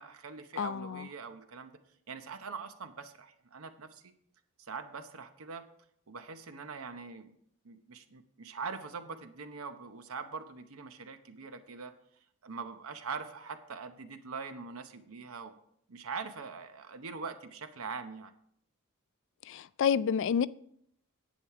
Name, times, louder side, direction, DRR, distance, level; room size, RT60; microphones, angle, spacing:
voice 1, 0.0-1.8 2.1-4.1 4.6-5.7 6.1-7.4 7.6-11.9 12.4-15.5 15.9-18.3, right 5 dB, 80° right, 0.8 m, -43 dB
voice 2, 19.5-20.5, left 7 dB, 60° left, 0.3 m, -28 dB
10.0 x 8.4 x 4.7 m
head